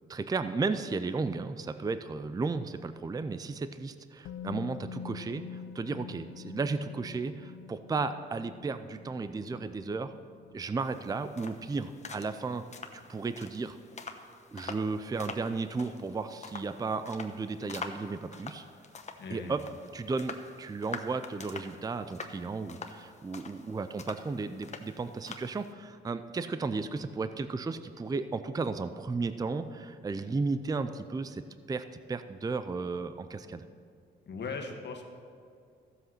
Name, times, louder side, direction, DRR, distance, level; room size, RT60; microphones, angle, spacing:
voice 1, 0.1-10.1 10.5-12.6 12.9-13.8 14.5-18.6 19.3-19.6 19.9-33.7, right 4 dB, 20° right, 11 dB, 0.5 m, -34 dB
Musical instrument, 4.2-12.1 12.4-12.6, left 7 dB, 85° left, 0.6 m, -47 dB
sound 1, 10.8-25.7, left 4 dB, 35° left, 1.0 m, -46 dB
voice 2, 19.2-19.5 34.3-35.1, left 4 dB, 55° left, 3 dB, 1.6 m, -38 dB
14.5 x 7.9 x 5.8 m, 2.3 s
cardioid pair, 105°, 21 cm